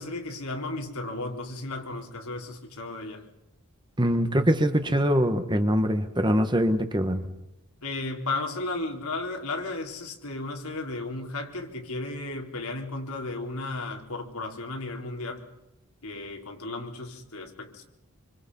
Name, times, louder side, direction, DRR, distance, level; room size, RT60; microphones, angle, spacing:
voice 1, 0.0-3.2 7.8-15.4 16.0-17.8, left 2 dB, 85° left, 2 dB, 4.1 m, -34 dB
voice 2, 4.0-7.2, equal, 20° right, 8 dB, 1.5 m, -23 dB
27.0 x 25.5 x 5.6 m, 0.91 s
head